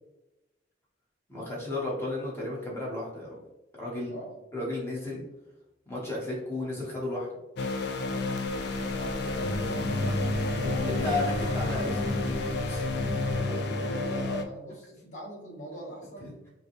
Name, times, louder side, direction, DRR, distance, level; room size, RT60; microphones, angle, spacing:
voice 1, 1.3-3.4 3.8-4.1 4.5-5.2 5.9-7.3 10.8-12.3 12.7-13.2 16.2-16.3, left 2 dB, 15° left, -6 dB, 1.2 m, -33 dB
sound 1, 7.6-14.4, left 3 dB, 60° left, 0.4 m, -32 dB
voice 2, 8.2-11.1 11.7-12.2 13.2-16.4, right 1 dB, 40° left, -3 dB, 1.2 m, -42 dB
sound 2, 8.4-13.4, right 1 dB, 30° right, 0.4 m, -41 dB
sound 3, 9.4-14.4, left 1 dB, 5° right, 1.2 m, -32 dB
5.3 x 2.3 x 3.1 m, 0.99 s
head